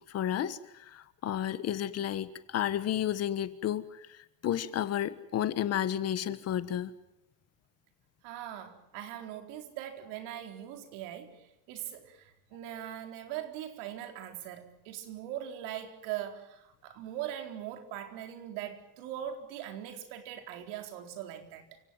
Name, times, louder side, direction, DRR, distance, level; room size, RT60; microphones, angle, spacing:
voice 1, 0.1-0.6 0.9-3.8 4.4-6.9, left 11 dB, 40° left, 1.4 m, -31 dB
voice 2, 8.2-21.8, right 11 dB, 85° right, 4.4 m, -41 dB
29.0 x 18.0 x 9.1 m
cardioid pair, 165°, 40 cm